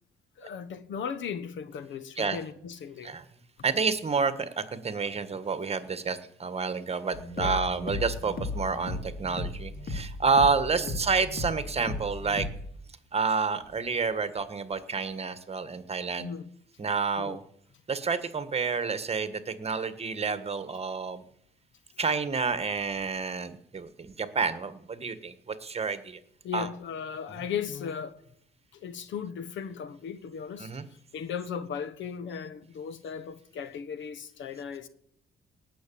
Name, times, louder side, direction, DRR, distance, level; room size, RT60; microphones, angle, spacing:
voice 1, 0.4-3.1 7.4-7.7 10.8-10.9 16.2-16.5 17.2-17.4 26.4-28.2 28.7-30.7 31.1-34.9, left 7 dB, 70° left, 1.1 m, -37 dB
voice 2, 3.6-12.5 13.1-16.3 16.8-17.4 17.9-21.2 22.0-26.2 26.5-26.7 30.6-30.8, right 5 dB, 30° right, 1.4 m, -29 dB
sound 1, 7.1-12.7, left 2 dB, 50° left, 2.5 m, -36 dB
18.0 x 6.6 x 8.6 m
cardioid pair, 90°, 20 cm